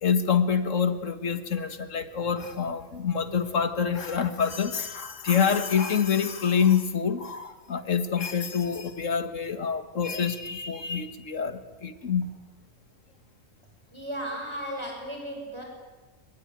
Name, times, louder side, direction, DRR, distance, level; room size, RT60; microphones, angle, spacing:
voice 1, 0.0-12.4, left 7 dB, 75° left, 10 dB, 1.9 m, -26 dB
voice 2, 13.9-15.6, equal, 20° right, 1 dB, 6.6 m, -35 dB
24.0 x 23.0 x 9.3 m, 1.2 s
omnidirectional pair, 1.3 m